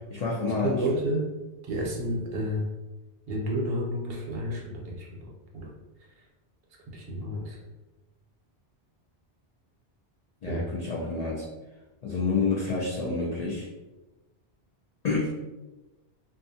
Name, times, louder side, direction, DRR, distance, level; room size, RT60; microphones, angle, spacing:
voice 1, 0.1-0.8 10.4-11.5 12.0-13.7 15.0-15.4, left 4 dB, 60° left, -5 dB, 0.4 m, -28 dB
voice 2, 0.6-1.3 1.6-2.7 3.3-5.7 6.9-7.6 10.4-10.7, equal, 65° right, -1 dB, 0.8 m, -31 dB
2.5 x 2.3 x 2.6 m, 1.1 s
omnidirectional pair, 1.2 m